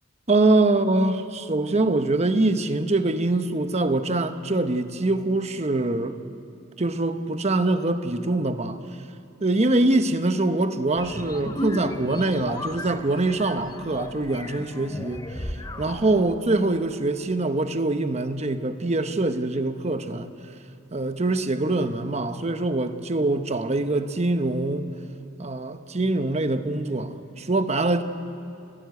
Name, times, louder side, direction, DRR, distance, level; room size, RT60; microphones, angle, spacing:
voice 1, 0.3-6.2 6.8-8.8 9.4-20.3 20.9-24.9 25.4-28.0, right 2 dB, 35° right, 9 dB, 0.9 m, -24 dB
sound 1, 10.9-16.1, left 1 dB, 20° left, 0.9 m, -35 dB
30.0 x 13.0 x 9.5 m, 2.6 s
head